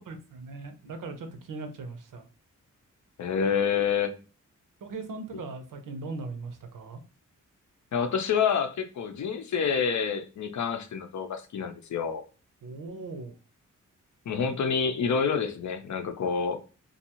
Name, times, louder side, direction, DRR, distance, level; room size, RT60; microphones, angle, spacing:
voice 1, 0.1-2.3 4.8-7.0 12.6-13.4, right 3 dB, 80° right, 0.7 m, -39 dB
voice 2, 3.2-4.1 7.9-12.2 14.3-16.6, left 6 dB, 60° left, 0.6 m, -28 dB
2.6 x 2.3 x 2.8 m
cardioid pair, 85°, 32 cm